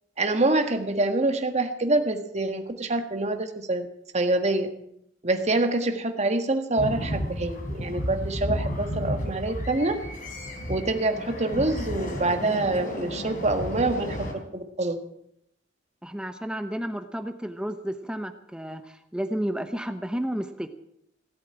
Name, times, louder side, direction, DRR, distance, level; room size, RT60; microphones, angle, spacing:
voice 1, 0.2-3.9 4.1-4.7 5.2-10.0 10.7-14.2 14.5-15.0, right 2 dB, 35° right, 6 dB, 1.5 m, -26 dB
sound 1, 6.8-14.3, equal, 45° left, 3.6 m, -32 dB
voice 2, 16.0-20.7, equal, 5° right, 8 dB, 0.8 m, -32 dB
17.5 x 8.3 x 8.8 m, 0.76 s
head